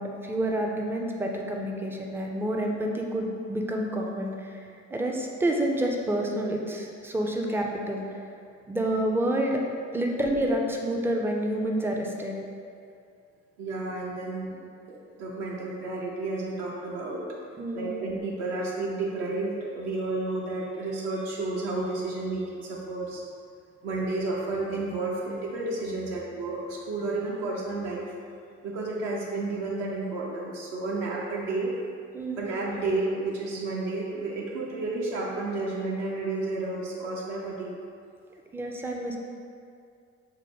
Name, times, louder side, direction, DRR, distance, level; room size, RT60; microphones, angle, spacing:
voice 1, 0.0-4.6 4.9-8.0 8.7-9.6 9.9-12.4 17.6-18.0 32.1-32.4 38.3-39.2, right 1 dB, 5° right, 1 dB, 0.3 m, -28 dB
voice 2, 13.6-14.6 14.9-17.2 17.7-23.2 23.8-28.0 28.6-31.7 32.4-37.8, right 2 dB, 65° right, -4 dB, 0.7 m, -31 dB
5.3 x 2.1 x 3.5 m, 2.3 s
figure-of-eight pair, 40°, 39 cm